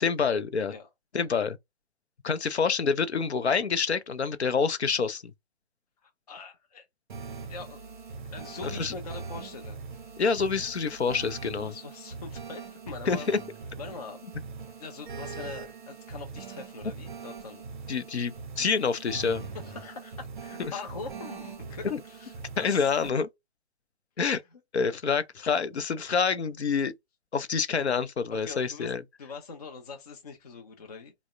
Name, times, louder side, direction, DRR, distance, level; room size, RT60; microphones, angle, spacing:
voice 1, 0.0-0.7 1.1-1.6 2.2-5.2 8.8-8.9 10.2-11.7 13.1-13.4 17.9-19.5 20.6-20.7 21.9-22.0 22.6-23.3 24.2-24.4 24.7-26.9 27.3-29.0, left 5 dB, 85° left, 0.5 m, -27 dB
voice 2, 0.7-1.3 6.0-6.9 7.5-7.8 8.3-9.8 11.6-13.3 13.8-14.2 14.8-17.6 19.5-22.9 24.2-24.3 28.3-28.9 29.2-31.1, left 4 dB, 40° left, 0.5 m, -43 dB
sound 1, 7.1-23.1, right 5 dB, 50° right, 0.5 m, -41 dB
3.4 x 2.0 x 2.3 m
figure-of-eight pair, 135°, 32 cm